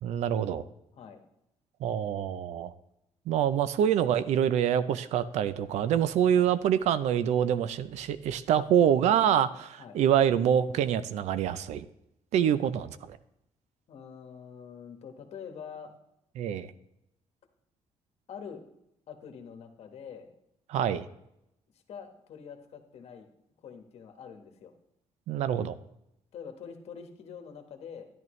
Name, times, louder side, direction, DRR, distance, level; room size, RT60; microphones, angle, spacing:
voice 1, 0.0-0.6 1.8-2.7 3.3-11.9 12.3-13.2 16.4-16.7 20.7-21.1 25.3-25.7, right 9 dB, 80° right, 14 dB, 0.6 m, -26 dB
voice 2, 13.9-15.9 18.3-18.6 19.1-20.3 21.9-23.3 23.6-24.7 26.3-28.1, left 7 dB, 65° left, 5 dB, 1.4 m, -45 dB
11.0 x 10.5 x 3.2 m, 0.81 s
cardioid pair, 115°, 12 cm